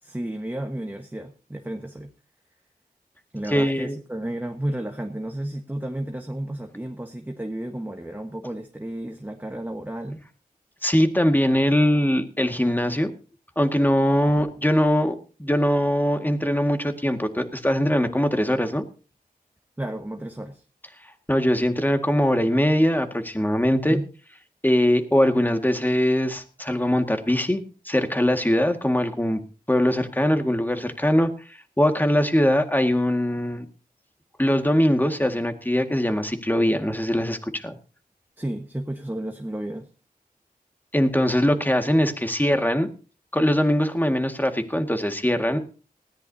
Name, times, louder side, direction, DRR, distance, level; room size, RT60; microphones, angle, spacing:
voice 1, 0.0-2.1 3.3-10.2 19.8-20.6 23.9-24.0 38.4-39.9, right 1 dB, 10° right, 4 dB, 1.4 m, -32 dB
voice 2, 3.5-4.0 10.8-13.1 13.6-18.8 21.3-24.0 24.6-29.4 29.7-33.7 34.4-37.8 40.9-42.9 43.3-45.6, equal, 10° left, 6 dB, 1.9 m, -22 dB
19.5 x 14.5 x 2.8 m, 0.36 s
wide cardioid pair, 55°, 16 cm